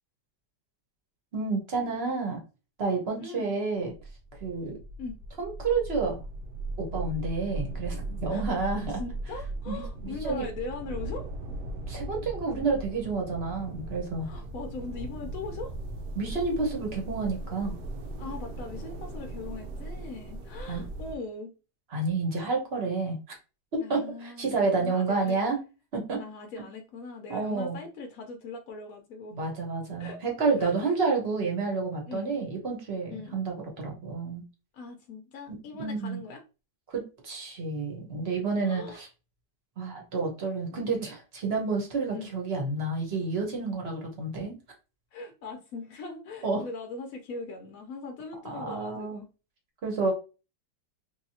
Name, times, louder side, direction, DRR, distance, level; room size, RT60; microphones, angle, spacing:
voice 1, 1.3-2.4 2.8-3.9 4.4-4.8 5.4-6.2 6.8-9.0 9.7-10.5 11.8-14.3 16.1-17.8 20.7-20.8 21.9-23.2 23.7-25.6 25.9-26.2 27.3-27.8 29.3-34.4 35.8-36.2 36.9-39.1 39.8-44.6 46.4-46.6 48.4-49.2 49.8-50.1, right 4 dB, 45° right, 1.1 m, -30 dB
voice 2, 3.2-3.6 5.0-5.2 8.3-8.4 9.0-11.3 14.2-15.7 18.2-21.5 23.8-25.4 26.2-29.4 30.0-30.2 30.6-31.0 32.1-32.3 33.1-33.4 34.7-36.4 38.6-39.0 42.1-42.3 45.1-49.3, left 3 dB, 65° left, 0.9 m, -40 dB
sound 1, 3.7-21.2, right 2 dB, 80° right, 1.2 m, -38 dB
3.4 x 2.7 x 2.7 m
omnidirectional pair, 1.8 m